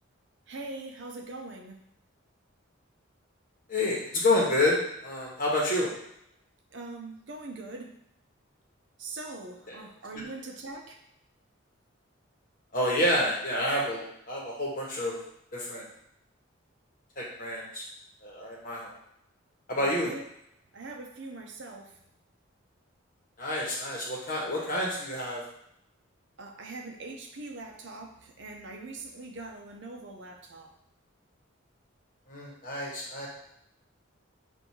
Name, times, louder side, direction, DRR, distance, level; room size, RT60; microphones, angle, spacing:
voice 1, 0.5-1.8 6.7-8.0 9.0-11.0 19.8-20.2 20.7-22.0 26.4-30.7, right 2 dB, 60° right, 2 dB, 0.6 m, -42 dB
voice 2, 3.7-5.9 9.7-9.8 12.7-15.2 15.5-15.9 17.2-17.8 18.2-18.9 19.7-20.1 23.4-25.4 32.3-33.3, left 1 dB, 45° left, -4 dB, 1.2 m, -28 dB
6.1 x 2.7 x 2.8 m, 0.77 s
head